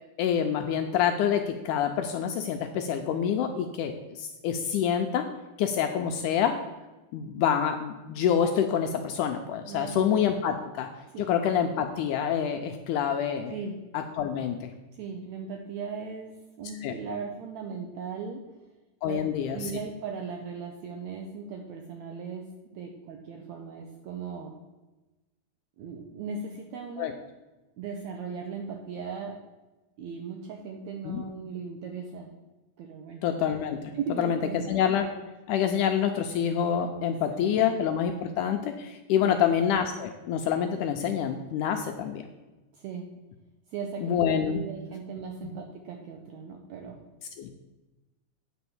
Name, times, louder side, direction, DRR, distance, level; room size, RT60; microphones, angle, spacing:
voice 1, 0.2-5.3 5.6-6.6 7.1-10.9 11.2-13.6 13.9-14.7 16.8-16.9 19.0-19.7 27.0-27.1 31.0-31.2 33.2-35.1 35.5-42.2 44.0-44.6 47.4-47.5, left 8 dB, 80° left, 5 dB, 1.8 m, -27 dB
voice 2, 9.7-10.1 11.1-11.3 13.5-13.7 14.9-18.4 19.1-19.2 19.5-24.5 25.8-27.1 27.8-29.4 30.0-32.4 32.8-33.2 33.9-34.8 37.0-37.8 39.2-39.5 42.7-43.1 43.7-44.2 44.5-47.0, right 5 dB, 80° right, 3 dB, 1.7 m, -38 dB
9.2 x 4.3 x 7.0 m, 1.1 s
omnidirectional pair, 4.0 m